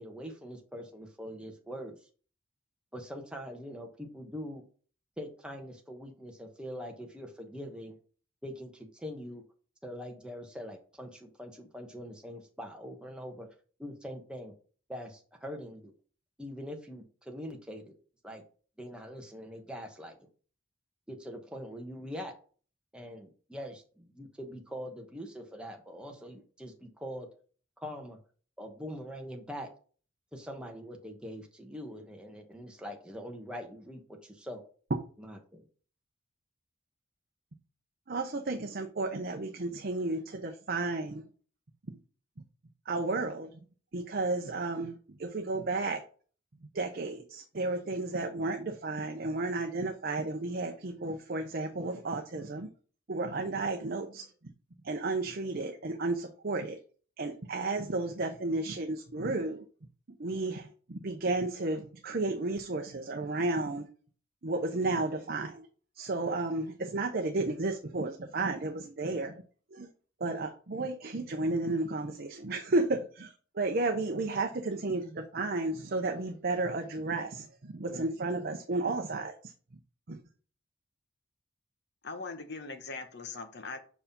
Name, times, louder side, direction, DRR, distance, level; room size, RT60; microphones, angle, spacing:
voice 1, 0.0-2.0 2.9-4.6 5.2-8.0 8.4-9.4 9.8-13.5 13.8-14.5 14.9-15.9 16.4-17.9 18.2-18.4 18.8-20.2 21.1-22.3 22.9-27.3 27.8-28.2 28.6-29.7 30.3-34.6 35.2-35.6, equal, 5° right, 2 dB, 1.1 m, -43 dB
voice 2, 38.1-41.3 42.9-43.5 43.9-46.0 46.7-52.7 53.1-54.3 54.8-56.8 57.2-59.6 60.2-63.9 64.4-65.6 66.0-69.4 69.7-69.9 70.2-79.5 80.1-80.2, right 2 dB, 50° right, 4 dB, 0.7 m, -33 dB
voice 3, 82.0-83.8, left 3 dB, 55° left, 7 dB, 1.1 m, -40 dB
5.5 x 4.8 x 5.2 m, 0.41 s
head